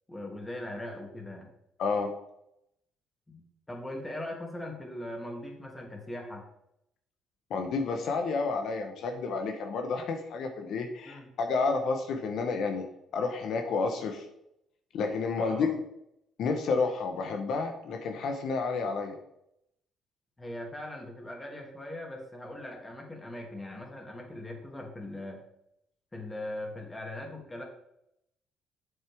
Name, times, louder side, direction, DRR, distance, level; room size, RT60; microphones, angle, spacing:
voice 1, 0.1-1.5 3.3-6.4 11.0-11.3 15.3-15.7 20.4-25.4 26.1-27.6, left 1 dB, 20° left, 1 dB, 2.5 m, -40 dB
voice 2, 1.8-2.1 7.5-12.8 13.1-14.2 14.9-15.7 16.4-19.2, left 4 dB, 70° left, 4 dB, 1.0 m, -30 dB
8.0 x 7.4 x 3.5 m, 0.79 s
supercardioid pair, 70°, 0 cm